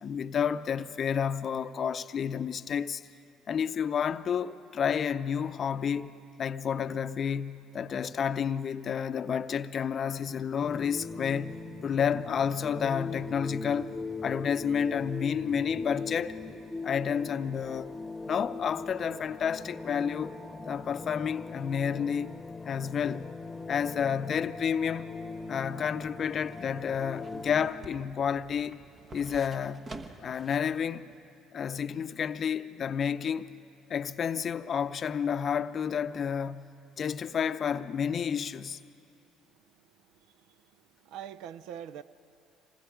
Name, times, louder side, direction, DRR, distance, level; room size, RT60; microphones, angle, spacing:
voice 1, 0.0-3.0 3.5-14.0 14.2-16.4 16.8-17.9 18.3-20.4 20.7-22.4 22.7-23.4 23.7-25.1 25.5-28.8 29.1-31.1 31.5-33.5 33.9-36.7 37.0-38.8, left 7 dB, 45° left, 0.6 m, -30 dB
sound 1, 10.6-27.7, left 3 dB, 15° left, 1.1 m, -40 dB
sound 2, 26.0-30.7 31.1-31.2, right 3 dB, 40° right, 1.4 m, -49 dB
voice 2, 40.1-40.7 41.0-42.0, right 9 dB, 70° right, 0.6 m, -44 dB
27.0 x 20.5 x 5.0 m
hypercardioid pair, 70°, 0 cm